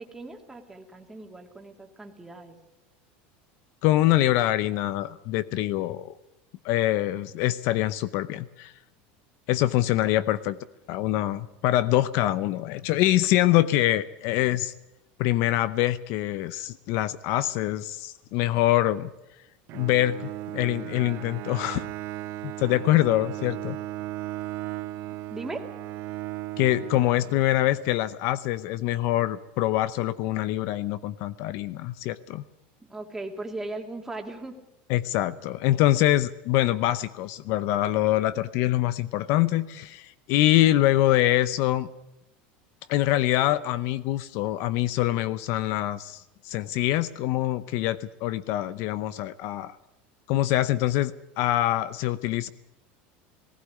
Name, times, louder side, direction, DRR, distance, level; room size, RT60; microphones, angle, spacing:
voice 1, 0.0-2.6 10.1-10.3 25.3-25.6 32.8-34.6, right 2 dB, 5° right, 2 dB, 2.5 m, -38 dB
voice 2, 3.8-6.1 6.6-8.7 9.5-10.6 10.9-14.7 15.2-19.1 19.7-21.9 22.4-23.8 26.6-32.4 34.9-41.9 42.9-49.8 50.3-51.1 51.4-52.5, left 15 dB, 55° left, 16 dB, 0.7 m, -24 dB
Bowed string instrument, 19.7-27.9, right 15 dB, 50° right, 0.7 m, -36 dB
19.0 x 16.0 x 9.6 m, 0.91 s
supercardioid pair, 150°, 5 cm